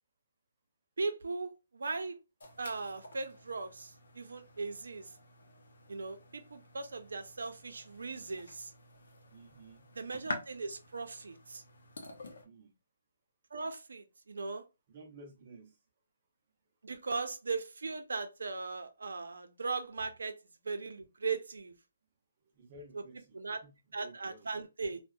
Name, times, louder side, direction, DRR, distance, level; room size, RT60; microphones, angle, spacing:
voice 1, 1.0-2.2 2.6-3.9 4.2-5.0 5.9-8.7 9.9-11.6 13.5-14.6 16.8-20.3 20.7-21.7 23.3-23.6 23.9-25.0, right 4 dB, 85° right, 0.5 m, -38 dB
sound 1, 2.4-12.4, left 3 dB, 55° left, 0.6 m, -49 dB
voice 2, 9.3-9.9 12.4-12.7 14.9-15.8 20.0-20.1 22.5-24.6, right 2 dB, 25° right, 0.6 m, -54 dB
2.6 x 2.1 x 2.3 m
hypercardioid pair, 175°, 0 cm